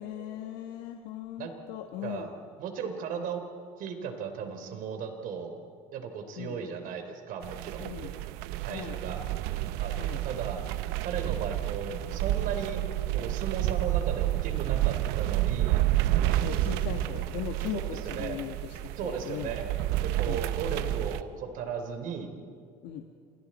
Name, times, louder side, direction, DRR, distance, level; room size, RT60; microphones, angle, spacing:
voice 1, 0.0-2.3 6.4-6.6 7.8-8.1 8.7-9.0 10.0-10.2 16.3-19.5 20.2-20.4 22.8-23.0, left 11 dB, 75° left, 4 dB, 1.5 m, -39 dB
voice 2, 2.6-3.4 3.8-5.6 5.9-8.1 8.6-9.2 9.8-10.6 11.0-12.8 13.1-15.8 17.7-18.4 19.0-19.7 20.0-22.3, right 6 dB, 60° right, 6 dB, 3.4 m, -36 dB
sound 1, 7.4-21.2, right 15 dB, 80° right, 0.9 m, -30 dB
29.0 x 27.5 x 4.3 m, 2.3 s
cardioid pair, 125°, 16 cm